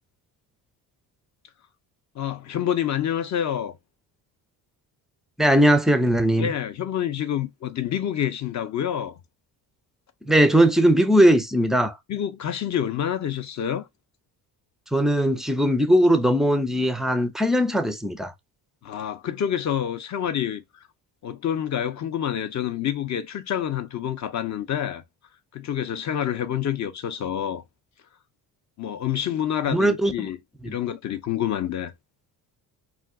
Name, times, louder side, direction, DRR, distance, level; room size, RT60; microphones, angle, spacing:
voice 1, 2.2-3.8 6.4-9.2 12.1-13.8 18.8-20.6 21.2-25.0 25.5-27.6 28.8-30.4 30.6-31.9, left 10 dB, 45° left, 0.6 m, -27 dB
voice 2, 5.4-6.5 10.3-12.0 14.9-18.3 29.7-30.3 30.6-30.8, equal, ahead, 0.3 m, -19 dB
2.4 x 2.4 x 3.5 m
cardioid pair, 80°, 41 cm